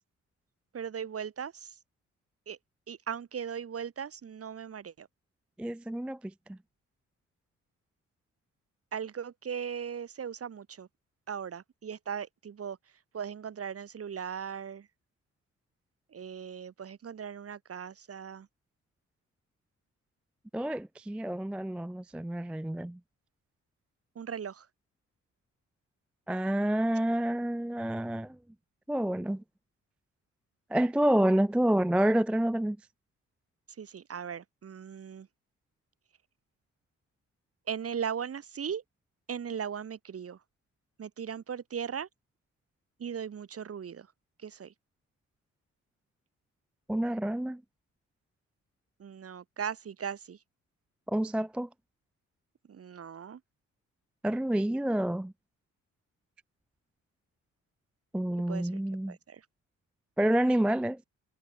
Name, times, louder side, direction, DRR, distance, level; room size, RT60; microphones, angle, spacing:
voice 1, 0.7-1.7 2.5-2.6 2.9-5.1 8.9-10.9 11.3-12.8 13.1-14.9 16.1-18.5 24.2-24.7 33.8-35.3 37.7-38.8 39.3-40.4 41.0-42.1 43.0-44.1 44.4-44.7 49.0-50.4 52.7-53.4 58.5-58.7 59.1-59.4, right 7 dB, 50° right, 4.4 m, -38 dB
voice 2, 5.6-6.6 20.5-23.0 26.3-28.4 28.9-29.4 30.7-32.8 46.9-47.6 51.1-51.7 54.2-55.3 58.1-59.2 60.2-61.0, right 1 dB, 5° right, 0.3 m, -28 dB
cardioid pair, 110°, 30 cm